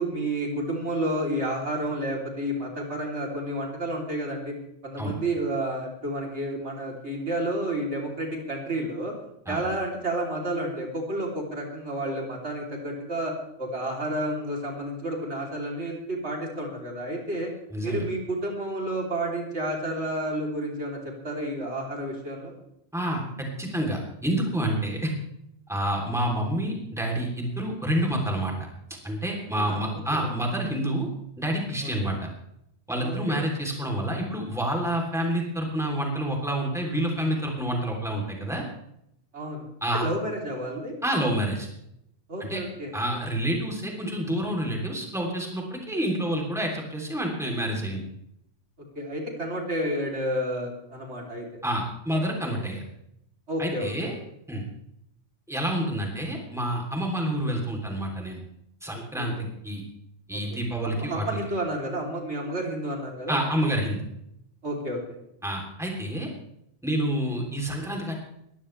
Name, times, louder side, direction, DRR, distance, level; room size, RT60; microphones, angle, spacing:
voice 1, 0.0-4.5 4.8-9.1 9.5-17.5 17.8-22.5 29.5-30.3 31.8-32.2 33.0-33.4 39.3-39.7 39.9-40.9 42.3-43.2 49.0-51.5 53.5-54.2 59.1-59.3 60.3-63.4 64.6-65.0, right 1 dB, 65° right, -1 dB, 3.7 m, -31 dB
voice 2, 17.7-18.0 22.9-25.1 25.7-28.5 29.0-31.1 31.4-32.3 32.9-38.6 39.8-40.1 41.0-41.7 42.4-42.6 42.9-48.0 51.6-52.8 53.6-54.1 54.5-54.7 55.5-58.4 58.8-59.8 60.3-61.2 63.3-64.0 65.4-66.3 66.8-68.1, right 1 dB, ahead, 0 dB, 3.2 m, -28 dB
21.0 x 14.5 x 3.3 m, 0.77 s
omnidirectional pair, 1.2 m